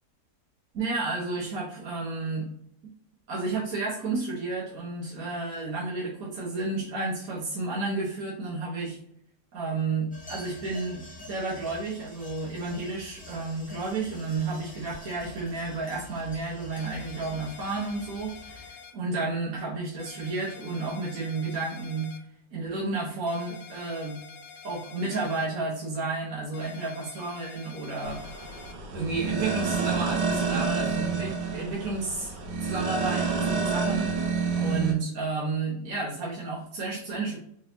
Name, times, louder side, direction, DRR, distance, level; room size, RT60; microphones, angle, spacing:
voice 1, 0.7-2.5 3.3-9.0 9.5-22.1 22.5-24.2 24.6-28.4 28.9-34.1 34.5-37.4, right 3 dB, 60° right, -5 dB, 1.4 m, -32 dB
sound 1, 10.1-18.7, left 2 dB, 10° left, 0.5 m, -47 dB
sound 2, 16.7-18.9 20.0-22.2 23.3-25.5 26.5-28.7, left 5 dB, 65° left, 1.2 m, -47 dB
sound 3, 28.0-34.9, right 4 dB, 85° right, 1.5 m, -29 dB
3.9 x 3.8 x 2.7 m, 0.69 s
omnidirectional pair, 1.8 m